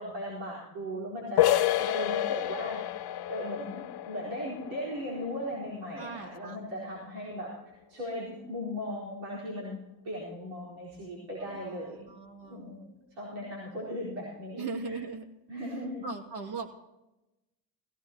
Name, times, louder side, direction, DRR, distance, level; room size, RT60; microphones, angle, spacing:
voice 1, 0.0-9.8 10.0-12.0 12.5-15.0 15.5-16.0, equal, 80° right, -6 dB, 4.5 m, -38 dB
sound 1, 1.4-6.9, left 13 dB, 55° left, 0.7 m, -30 dB
voice 2, 6.0-6.7 11.4-12.9 14.6-15.3 15.6-16.7, right 5 dB, 55° right, 4 dB, 2.4 m, -40 dB
18.0 x 16.0 x 2.9 m, 0.97 s
supercardioid pair, 65°, 46 cm